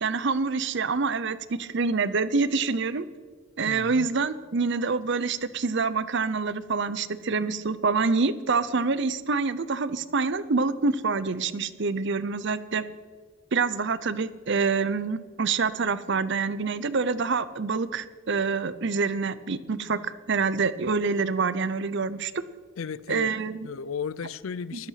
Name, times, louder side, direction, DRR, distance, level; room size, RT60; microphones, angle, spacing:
voice 1, 0.0-3.1 3.6-12.8 13.5-22.3 23.1-23.7 24.7-24.9, right 4 dB, 55° right, 0.7 m, -26 dB
voice 2, 3.7-4.1 22.8-24.9, left 6 dB, 70° left, 0.5 m, -35 dB
14.0 x 12.0 x 5.8 m
head